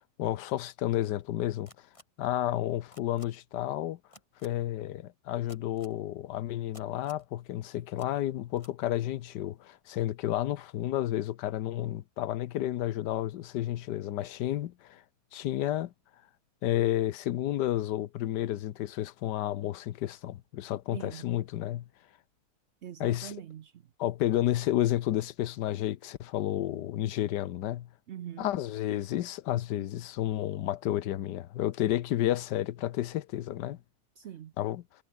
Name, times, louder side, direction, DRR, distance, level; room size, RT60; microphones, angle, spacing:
voice 1, 0.2-1.7 2.2-4.0 4.4-15.0 15.3-15.9 16.6-21.9 23.0-23.3 24.0-27.9 28.4-33.8 34.6-34.8, left 13 dB, 80° left, 1.4 m, -31 dB
sound 1, 1.7-2.0 2.9-3.3 4.1-4.5 5.5-5.9 6.7-7.3 8.0-8.1 8.6-8.7, left 1 dB, 15° left, 5.7 m, -53 dB
voice 2, 20.9-21.3 22.8-23.8 28.1-28.6 34.2-34.5, right 10 dB, 60° right, 0.7 m, -43 dB
omnidirectional pair, 1.8 m